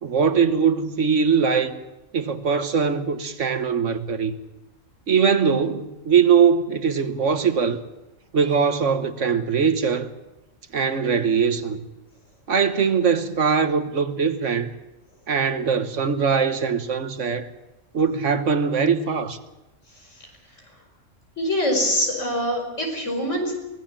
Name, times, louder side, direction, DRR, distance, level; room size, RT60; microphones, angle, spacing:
voice 1, 0.0-1.8 2.1-4.4 5.1-7.8 8.3-10.1 10.7-11.8 12.5-14.7 15.3-17.5 17.9-19.4, right 6 dB, 65° right, 1.5 m, -21 dB
voice 2, 21.4-23.5, equal, 60° left, 5.5 m, -24 dB
24.0 x 17.5 x 7.5 m
omnidirectional pair, 1.4 m